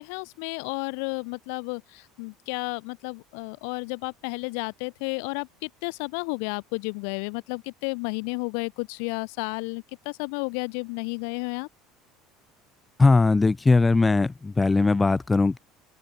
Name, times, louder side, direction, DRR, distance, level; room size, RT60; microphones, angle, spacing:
voice 1, 0.0-11.7, left 39 dB, 75° left, 0.4 m, -32 dB
voice 2, 13.0-15.6, left 3 dB, 10° left, 0.3 m, -20 dB
open air
cardioid pair, 175°, 0 cm